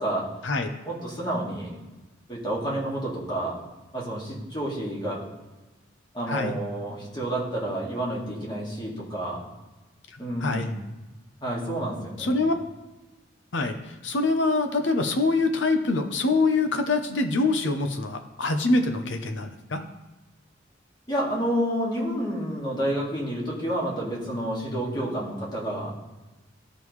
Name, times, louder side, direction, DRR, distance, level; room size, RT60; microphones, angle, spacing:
voice 1, 0.9-1.7 2.3-3.6 3.9-5.2 6.1-9.4 10.2-10.8 11.4-12.4 21.1-25.9, right 1 dB, 25° left, -4 dB, 2.1 m, -29 dB
voice 2, 6.3-6.6 10.4-10.7 12.2-12.5 13.5-19.8, left 3 dB, 70° left, 7 dB, 0.8 m, -25 dB
14.0 x 5.1 x 3.2 m, 1.1 s
head